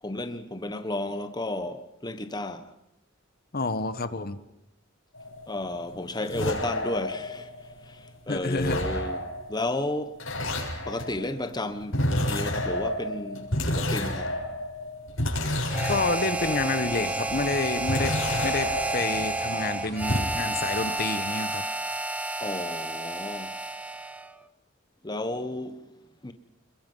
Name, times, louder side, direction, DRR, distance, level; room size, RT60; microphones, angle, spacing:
voice 1, 0.0-2.7 5.5-7.5 7.8-9.2 9.5-10.2 10.9-14.4 22.4-23.5 25.0-25.9 26.2-26.3, left 2 dB, 20° left, 1.2 m, -33 dB
voice 2, 3.5-4.4 8.3-8.8 15.9-18.1 18.4-21.6, left 3 dB, 50° left, 1.3 m, -29 dB
sound 1, 5.1-8.1 8.5-17.0 17.5-19.7 20.0-20.2, left 1 dB, 80° left, 7.0 m, -30 dB
sound 2, 15.5-21.0, right 1 dB, 45° right, 5.2 m, -43 dB
Harmonica, 15.7-24.3, right 2 dB, 5° right, 0.9 m, -31 dB
29.0 x 22.0 x 5.6 m
head